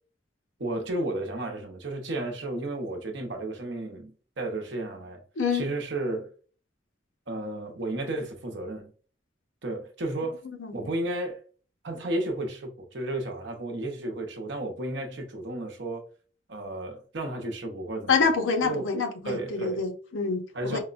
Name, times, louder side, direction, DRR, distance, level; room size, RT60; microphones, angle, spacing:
voice 1, 0.6-5.2 5.5-6.3 7.3-8.9 9.6-10.4 10.7-11.4 11.8-16.0 16.5-18.3 18.6-18.9 19.2-19.8 20.5-20.8, right 1 dB, 65° right, 0.8 m, -33 dB
voice 2, 5.4-5.7 10.6-10.9 18.1-20.8, left 5 dB, 85° left, 0.7 m, -27 dB
4.6 x 2.1 x 2.4 m
head